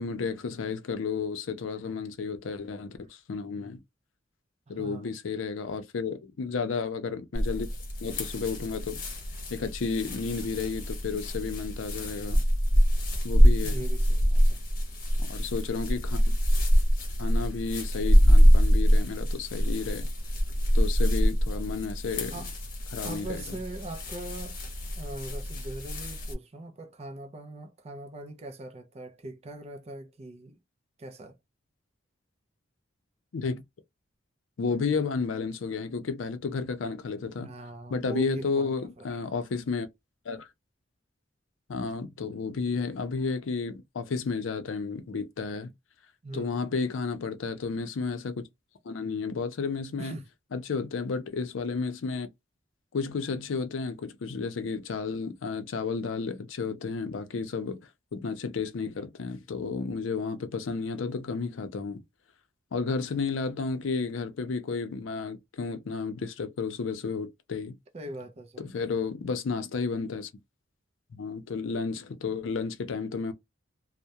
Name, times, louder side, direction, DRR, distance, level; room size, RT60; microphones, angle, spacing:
voice 1, 0.0-3.8 4.7-7.7 8.0-9.0 9.5-12.4 13.2-13.9 15.3-16.2 17.2-20.1 20.7-22.4 22.9-23.6 33.3-33.6 34.6-37.5 37.9-39.9 40.3-40.5 41.7-45.7 46.3-48.4 48.8-50.2 50.5-52.3 52.9-62.0 62.7-67.8 68.6-70.3 71.1-73.3, left 4 dB, 80° left, 0.5 m, -32 dB
voice 2, 4.7-5.1 13.6-14.6 22.3-22.5 23.0-24.6 25.0-30.6 31.0-31.4 37.4-39.2 46.2-46.9 50.0-50.2 67.9-68.7, right 2 dB, 30° right, 0.4 m, -41 dB
sound 1, 7.3-26.3, equal, 45° left, 0.8 m, -25 dB
2.3 x 2.0 x 2.7 m
head